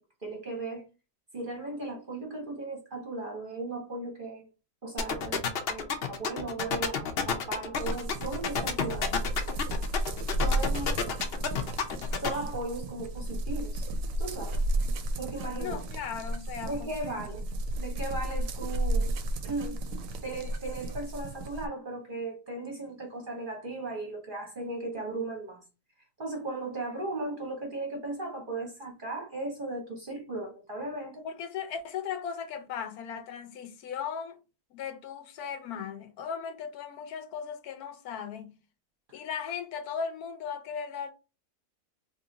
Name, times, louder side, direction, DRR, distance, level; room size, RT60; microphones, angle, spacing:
voice 1, 0.2-0.9 1.3-4.5 4.8-9.1 10.4-11.0 12.2-13.9 14.2-14.6 15.2-15.8 16.6-17.4 17.7-19.1 19.4-19.8 20.2-25.6 26.2-31.3, right 2 dB, 40° right, 0.8 m, -37 dB
sound 1, 5.0-12.3, left 6 dB, 60° left, 0.7 m, -29 dB
sound 2, 7.7-21.7, right 1 dB, 70° right, 0.9 m, -33 dB
voice 2, 15.6-17.2 31.2-34.4 34.7-38.5 39.1-41.1, left 7 dB, 75° left, 1.0 m, -37 dB
3.0 x 2.6 x 3.9 m
omnidirectional pair, 1.7 m